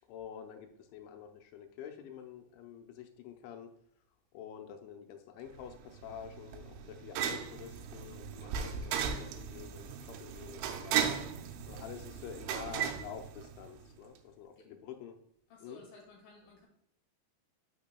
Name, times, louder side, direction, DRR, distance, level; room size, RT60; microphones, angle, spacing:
voice 1, 0.1-3.7 4.3-11.2 11.6-15.2 15.6-15.8, left 8 dB, 85° left, 5 dB, 3.1 m, -48 dB
sound 1, 5.6-13.9, right 8 dB, 90° right, 3.1 m, -37 dB
voice 2, 15.5-16.7, left 2 dB, 60° left, 1 dB, 2.7 m, -55 dB
10.0 x 5.9 x 2.2 m, 0.72 s
omnidirectional pair, 5.4 m